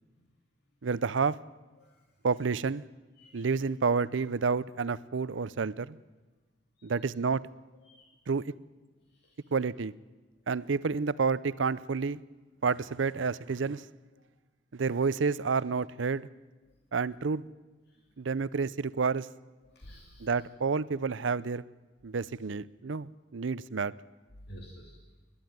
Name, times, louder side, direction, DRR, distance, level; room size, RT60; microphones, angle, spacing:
voice 1, 0.8-1.4 2.2-2.8 3.3-6.0 6.8-7.4 8.3-8.4 9.5-9.9 10.5-12.2 12.6-13.8 14.7-16.3 16.9-17.5 18.2-19.3 20.2-21.6 22.0-23.9, right 5 dB, 85° right, 18 dB, 0.6 m, -29 dB
voice 2, 7.8-8.2 19.7-20.3 24.5-25.0, equal, 60° left, -1 dB, 2.7 m, -50 dB
28.0 x 11.5 x 9.3 m, 1.2 s
head